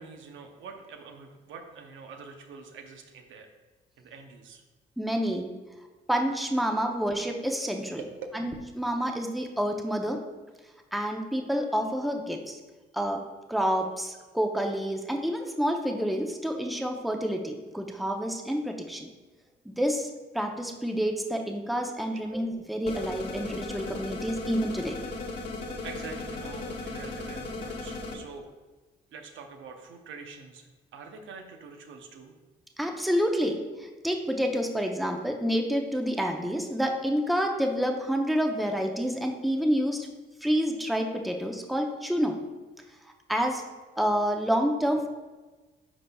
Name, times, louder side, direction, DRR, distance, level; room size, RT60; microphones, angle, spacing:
voice 1, 0.0-3.5 4.0-4.6 8.0-8.1 22.0-22.3 25.4-25.5 25.8-28.5 29.1-32.3, right 4 dB, 75° right, 4 dB, 0.8 m, -45 dB
voice 2, 5.0-5.5 6.1-8.0 8.3-10.2 10.9-12.6 12.9-13.2 13.5-19.1 19.7-20.1 20.3-25.0 32.8-40.1 40.4-42.4 43.3-43.6 44.0-45.1, equal, ahead, 3 dB, 0.7 m, -28 dB
sound 1, 22.9-28.2, left 2 dB, 55° left, 1.3 m, -36 dB
11.0 x 4.0 x 2.3 m, 1.2 s
cardioid pair, 90°, 20 cm